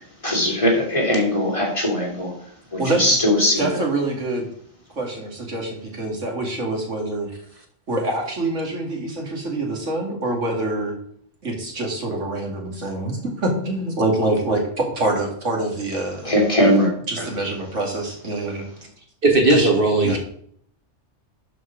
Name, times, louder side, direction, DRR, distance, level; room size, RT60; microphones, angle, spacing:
voice 1, 0.0-2.3 2.7-3.8 16.2-16.9 17.2-17.3, left 1 dB, 25° left, -1 dB, 2.8 m, -20 dB
voice 2, 3.6-4.5 4.9-7.3 7.9-10.9 11.4-16.4 17.1-18.6 19.5-19.7 20.0-20.2, right 2 dB, 90° right, 1 dB, 2.6 m, -25 dB
voice 3, 19.2-20.2, right 2 dB, 50° right, 3 dB, 1.5 m, -16 dB
11.0 x 5.0 x 5.1 m, 0.62 s
omnidirectional pair, 1.2 m